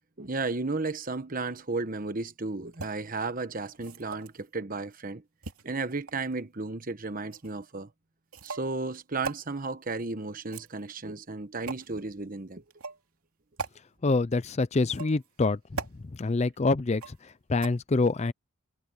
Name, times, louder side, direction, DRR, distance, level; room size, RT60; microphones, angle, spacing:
voice 1, 0.2-5.2 5.6-7.9 8.4-12.6, right 3 dB, 40° right, 1.2 m, -34 dB
sound 1, 2.7-2.9 3.7-4.4 5.4-6.3 7.3-7.5 8.3-8.7 9.2-9.4 10.4-11.0 11.7-11.9 12.7-13.0 13.6-13.7 14.8-15.3 15.7-16.0 17.0-17.3 17.6-17.7, right 4 dB, 90° right, 2.7 m, -39 dB
voice 2, 14.0-15.6 15.9-18.3, left 3 dB, 30° left, 0.4 m, -26 dB
head